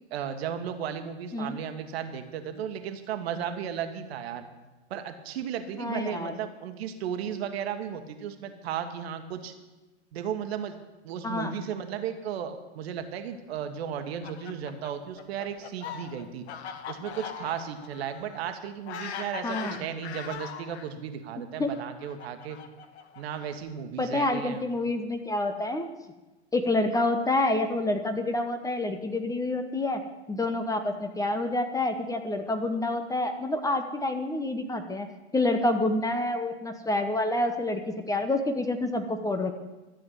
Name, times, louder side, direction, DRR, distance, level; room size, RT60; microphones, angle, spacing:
voice 1, 0.1-4.4 4.9-9.5 10.1-10.8 11.0-16.4 16.9-22.6 23.2-24.6, right 8 dB, 60° right, 7 dB, 1.6 m, -35 dB
voice 2, 5.8-6.4 11.2-11.6 19.4-19.8 21.6-21.7 24.0-25.9 26.5-30.0 30.3-35.1 35.3-39.5, left 2 dB, 10° left, 7 dB, 0.9 m, -28 dB
Fowl, 13.9-20.9 21.7-23.7, left 8 dB, 65° left, 1.3 m, -41 dB
13.0 x 7.5 x 8.2 m, 1.1 s
hypercardioid pair, 100°, 35 cm